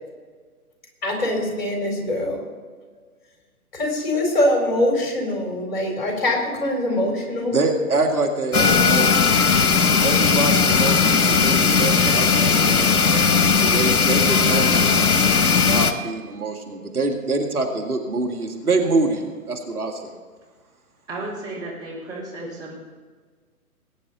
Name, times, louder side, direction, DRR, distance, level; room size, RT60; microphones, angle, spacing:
voice 1, 1.0-2.4 3.7-7.6, left 1 dB, 40° left, 1 dB, 4.2 m, -23 dB
voice 2, 7.5-9.5 10.0-15.1 15.5-20.2, right 3 dB, 70° right, 3 dB, 2.2 m, -25 dB
sound 1, 8.5-15.9, left 5 dB, 70° left, 1.2 m, -17 dB
voice 3, 21.1-22.7, right 2 dB, 10° right, -6 dB, 4.5 m, -33 dB
21.0 x 9.8 x 4.0 m, 1.5 s
figure-of-eight pair, 130°, 45 cm